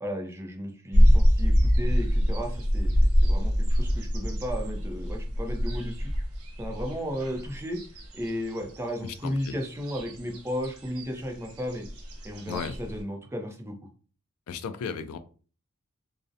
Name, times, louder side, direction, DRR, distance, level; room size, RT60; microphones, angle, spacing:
voice 1, 0.0-6.1 6.6-7.8 8.1-11.9 12.2-13.8, equal, 10° right, 3 dB, 0.4 m, -34 dB
sound 1, 0.9-13.0, equal, 85° right, 0.6 m, -25 dB
voice 2, 9.0-9.5 12.5-12.8 14.5-15.2, left 6 dB, 80° left, 10 dB, 0.3 m, -35 dB
2.4 x 2.0 x 2.6 m, 0.38 s
head